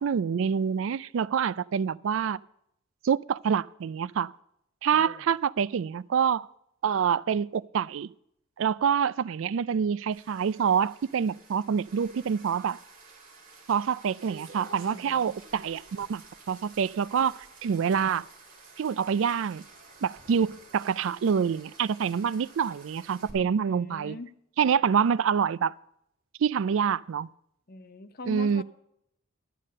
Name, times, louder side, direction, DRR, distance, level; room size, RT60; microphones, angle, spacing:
voice 1, 0.0-2.4 3.0-4.3 4.8-6.5 6.8-8.1 8.6-12.8 13.7-16.2 16.5-18.3 18.8-19.6 20.0-24.2 24.6-25.7 26.4-27.3 28.3-28.6, right 7 dB, 65° right, 0.3 m, -26 dB
voice 2, 4.9-5.2 14.9-15.3 23.3-24.3 27.7-28.6, left 2 dB, 45° left, 0.9 m, -42 dB
sound 1, 10.1-23.3, right 3 dB, 40° right, 2.5 m, -51 dB
11.5 x 8.4 x 6.4 m
head